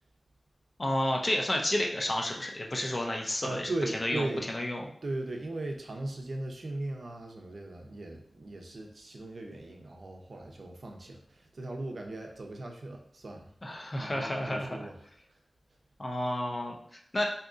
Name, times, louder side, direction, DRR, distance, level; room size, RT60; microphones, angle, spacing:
voice 1, 0.8-3.7 4.0-4.9 13.6-14.9 16.0-17.2, left 1 dB, 35° left, 1 dB, 0.6 m, -31 dB
voice 2, 3.4-4.5 5.0-13.5 14.0-14.9, right 2 dB, 65° right, 2 dB, 0.6 m, -38 dB
3.6 x 2.8 x 2.5 m, 0.63 s
wide cardioid pair, 90°, 0 cm